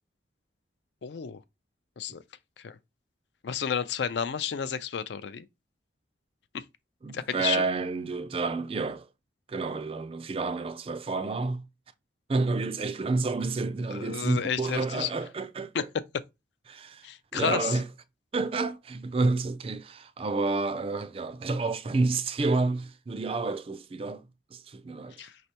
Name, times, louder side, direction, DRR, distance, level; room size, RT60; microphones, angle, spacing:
voice 1, 1.0-1.4 2.0-2.2 2.6-2.8 3.4-5.5 6.5-6.6 7.1-7.6 13.9-15.1 15.7-15.8 17.0-17.8 25.2-25.4, left 7 dB, 70° left, 0.4 m, -31 dB
voice 2, 7.0-9.1 9.5-11.6 12.3-15.9 16.7-17.1 17.3-17.9 18.3-25.2, right 3 dB, 30° right, 0.3 m, -29 dB
5.0 x 3.3 x 2.8 m
head